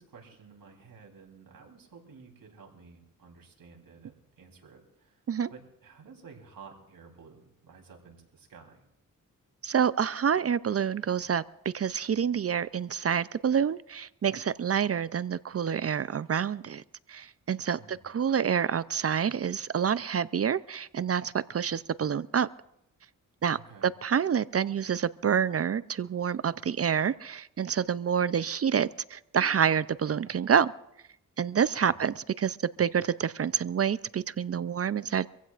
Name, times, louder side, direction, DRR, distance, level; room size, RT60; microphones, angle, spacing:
voice 1, 0.0-5.2 5.5-8.8 17.8-18.0 23.5-23.9, right 5 dB, 80° right, 1 dB, 3.6 m, -52 dB
voice 2, 9.6-11.4 11.7-16.8 17.1-22.5 23.4-30.7 31.4-35.3, right 7 dB, 45° right, 17 dB, 0.5 m, -28 dB
25.5 x 15.5 x 2.5 m, 0.83 s
cardioid pair, 55°, 34 cm